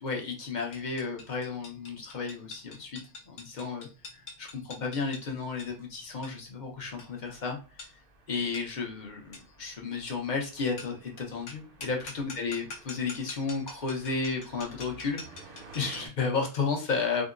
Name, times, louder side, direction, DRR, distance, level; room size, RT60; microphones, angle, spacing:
voice 1, 0.0-3.0 3.3-3.9 4.1-7.6 8.3-15.4 15.7-17.2, left 4 dB, 45° left, 1 dB, 0.8 m, -33 dB
sound 1, 0.7-16.2, left 3 dB, 70° left, 1.1 m, -47 dB
sound 2, 6.8-16.1, right 3 dB, 55° right, 0.9 m, -54 dB
3.6 x 2.0 x 2.4 m, 0.33 s
omnidirectional pair, 1.2 m